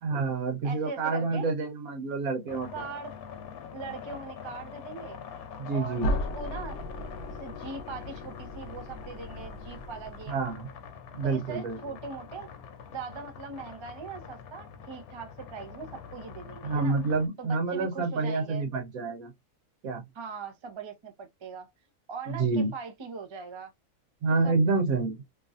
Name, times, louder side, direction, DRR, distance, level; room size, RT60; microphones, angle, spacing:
voice 1, 0.0-2.8 5.6-6.1 10.3-10.7 11.1-11.8 16.6-19.3 19.8-20.0 22.3-22.7 24.2-25.2, right 3 dB, 75° right, 1.3 m, -28 dB
voice 2, 0.6-1.5 2.7-3.1 3.7-5.2 5.7-6.8 7.3-10.4 11.2-12.5 12.9-17.0 17.4-18.6 20.1-21.7 22.1-23.7 24.3-24.5, right 5 dB, 35° right, 0.4 m, -41 dB
sound 1, 2.5-17.3, left 7 dB, 90° left, 1.1 m, -44 dB
sound 2, 6.0-10.8, equal, 60° left, 0.9 m, -36 dB
2.9 x 2.5 x 2.4 m
omnidirectional pair, 1.5 m